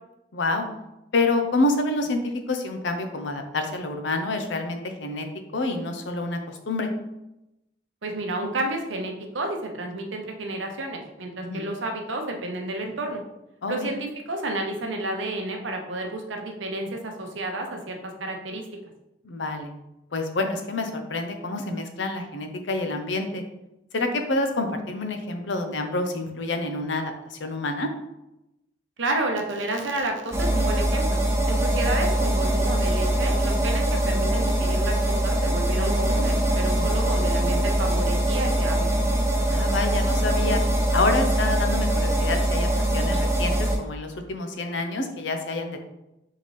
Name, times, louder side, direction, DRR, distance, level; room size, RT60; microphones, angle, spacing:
voice 1, 0.3-0.7 1.1-5.3 5.5-6.9 11.4-11.7 13.6-14.0 19.2-19.7 20.1-23.4 23.9-27.9 36.7-37.0 39.5-40.6 40.9-42.7 42.9-45.8, left 2 dB, 75° left, 6 dB, 0.6 m, -28 dB
voice 2, 8.0-13.2 13.7-18.6 29.0-31.2 31.5-38.9, right 2 dB, 85° right, 3 dB, 0.8 m, -31 dB
sound 1, 30.3-43.8, right 1 dB, 15° right, 0.5 m, -23 dB
4.0 x 3.8 x 3.1 m, 0.91 s
head